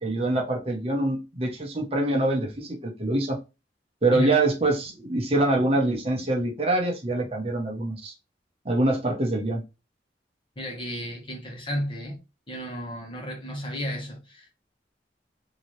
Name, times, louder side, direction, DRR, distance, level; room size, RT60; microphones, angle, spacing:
voice 1, 0.0-3.4 4.0-8.1 8.6-9.6, right 2 dB, 35° right, 0.9 m, -25 dB
voice 2, 10.6-12.2 12.5-14.6, equal, 30° left, 1.2 m, -33 dB
3.9 x 2.8 x 3.1 m
head